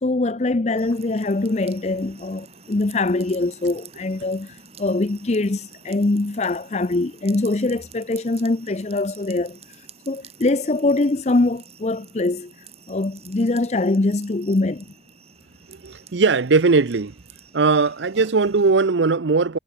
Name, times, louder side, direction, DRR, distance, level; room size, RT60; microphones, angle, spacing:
voice 1, 0.0-9.6 10.1-12.5 12.9-14.9, left 2 dB, 35° left, 0.6 m, -23 dB
sound 1, 0.7-18.7, right 6 dB, 35° right, 4.3 m, -48 dB
voice 2, 15.7-17.1 17.5-19.6, right 4 dB, 70° right, 0.7 m, -19 dB
head